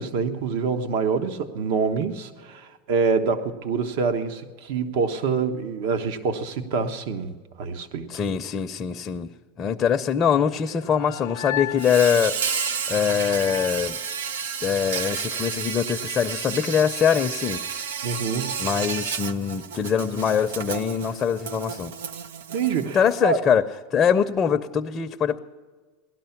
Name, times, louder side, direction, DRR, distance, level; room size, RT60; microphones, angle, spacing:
voice 1, 0.0-8.1 18.0-18.7 22.5-23.4, right 5 dB, 65° right, 8 dB, 1.1 m, -26 dB
voice 2, 8.1-9.3 9.6-12.6 12.9-14.0 14.6-17.6 18.6-21.9 22.9-23.6 23.9-25.4, left 7 dB, 25° left, 5 dB, 0.6 m, -23 dB
sound 1, 10.6-14.8, left 12 dB, 85° left, 0.4 m, -36 dB
Insect, 11.8-23.2, right 7 dB, 90° right, 0.7 m, -31 dB
17.5 x 12.0 x 5.8 m, 1.5 s
supercardioid pair, 125°, 0 cm